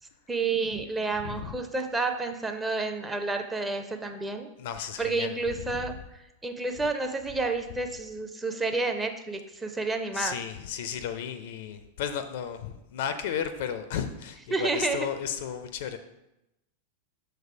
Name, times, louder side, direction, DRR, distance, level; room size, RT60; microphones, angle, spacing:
voice 1, 0.3-4.5 5.0-5.9 6.4-10.3 14.5-15.0, right 3 dB, 10° right, 5 dB, 0.6 m, -30 dB
voice 2, 1.2-1.5 4.6-5.9 10.1-16.0, left 8 dB, 55° left, 10 dB, 0.4 m, -34 dB
6.3 x 3.4 x 4.9 m, 0.90 s
figure-of-eight pair, 90°, 0 cm